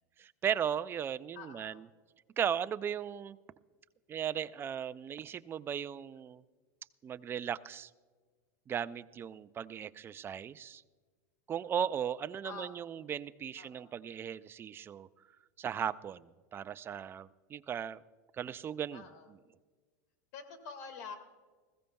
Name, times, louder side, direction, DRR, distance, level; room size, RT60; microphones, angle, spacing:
voice 1, 0.2-1.9 2.4-3.4 4.1-6.4 7.0-7.9 8.7-10.8 11.5-15.1 15.6-18.0 18.3-19.0, right 8 dB, 25° right, 15 dB, 0.4 m, -37 dB
voice 2, 1.3-1.8 12.4-12.7 13.6-14.0 18.9-19.3 20.3-21.2, left 5 dB, 70° left, 7 dB, 1.9 m, -47 dB
20.0 x 15.5 x 2.3 m, 1.4 s
supercardioid pair, 120°, 9 cm